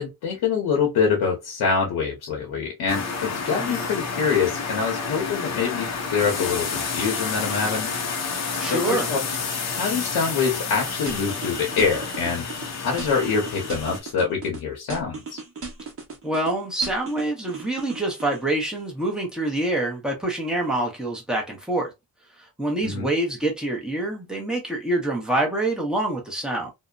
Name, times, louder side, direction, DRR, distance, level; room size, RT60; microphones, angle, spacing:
voice 1, 0.0-8.0 8.6-9.2 9.7-12.4 12.8-15.4 22.8-23.1, left 5 dB, 90° left, 0.9 m, -25 dB
sound 1, 2.9-14.0, left 5 dB, 45° left, 0.6 m, -30 dB
voice 2, 8.6-9.1 16.2-21.9 22.6-26.7, right 2 dB, ahead, 0.7 m, -26 dB
sound 2, 11.1-12.7 13.0-14.6 14.9-16.5 16.8-18.4, right 4 dB, 35° right, 0.9 m, -36 dB
2.7 x 2.1 x 2.3 m
cardioid pair, 155°, 37 cm